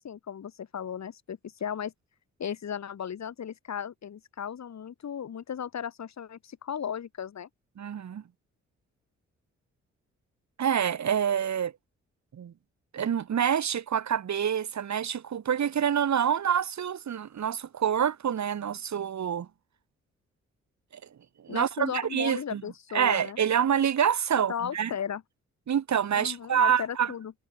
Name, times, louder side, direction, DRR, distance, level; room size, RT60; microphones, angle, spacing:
voice 1, 0.0-1.9 2.4-7.5 21.5-23.4 24.5-25.2 26.1-27.3, left 8 dB, 60° left, 2.7 m, -36 dB
voice 2, 7.8-8.2 10.6-11.7 12.3-12.5 12.9-19.5 21.4-22.6 22.9-24.9 25.7-27.1, right 8 dB, 65° right, 3.4 m, -27 dB
supercardioid pair, 45°, 30 cm